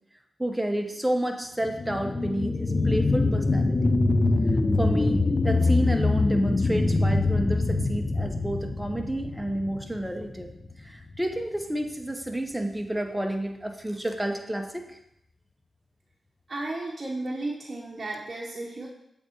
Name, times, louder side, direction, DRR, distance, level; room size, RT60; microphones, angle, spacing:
voice 1, 0.4-3.9 4.8-10.5 10.8-14.8, right 1 dB, 10° right, 4 dB, 0.9 m, -30 dB
sound 1, 1.6-10.7 11.2-11.3, left 2 dB, 35° left, 0.6 m, -24 dB
voice 2, 16.5-18.9, right 2 dB, 45° right, -3 dB, 0.9 m, -34 dB
7.7 x 3.5 x 4.4 m, 0.80 s
cardioid pair, 45°, 0 cm